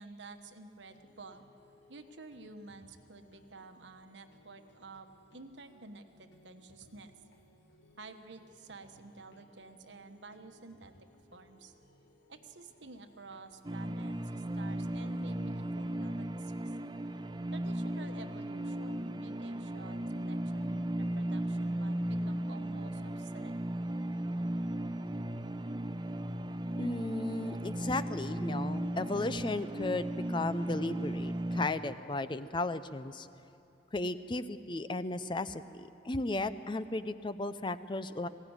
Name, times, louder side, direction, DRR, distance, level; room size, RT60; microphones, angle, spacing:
voice 1, 0.0-1.4 1.9-7.2 8.0-11.7 12.3-16.7 17.5-23.5, right 3 dB, 70° right, 7 dB, 1.2 m, -51 dB
sound 1, 0.9-16.0, left 1 dB, 65° left, 1.8 m, -63 dB
sound 2, 13.6-31.7, right 1 dB, 25° right, 0.6 m, -36 dB
voice 2, 26.8-33.3 33.9-38.3, left 2 dB, 25° left, 12 dB, 0.5 m, -35 dB
21.0 x 17.0 x 9.6 m, 2.7 s
head